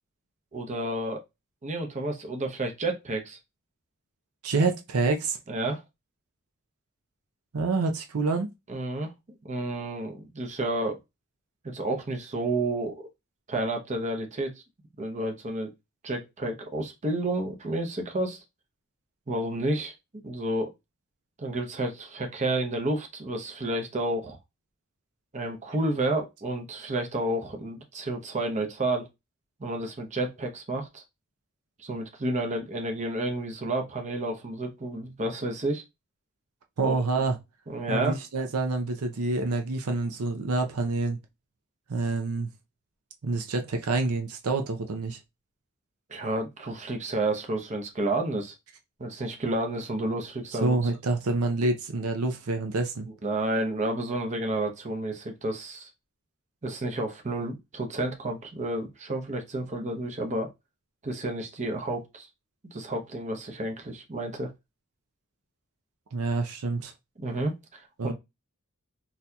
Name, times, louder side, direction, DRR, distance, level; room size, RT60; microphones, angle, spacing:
voice 1, 0.5-1.2 1.6-3.4 5.5-5.8 8.7-9.1 9.4-11.0 11.6-13.1 13.5-14.6 15.0-15.7 16.0-18.4 19.3-19.9 20.2-20.7 21.4-24.4 25.3-29.1 29.6-31.0 31.8-35.8 36.8-37.1 37.7-38.2 46.1-48.5 49.0-50.8 53.2-55.9 56.6-60.5 61.0-62.3 62.6-64.5 67.2-68.1, right 2 dB, 35° right, 0.7 m, -30 dB
voice 2, 4.4-5.4 7.5-8.5 36.8-37.4 37.9-41.2 41.9-42.5 43.2-45.2 50.6-53.1 66.1-66.9 68.0-68.1, right 3 dB, 85° right, 0.6 m, -27 dB
4.1 x 2.7 x 2.2 m
head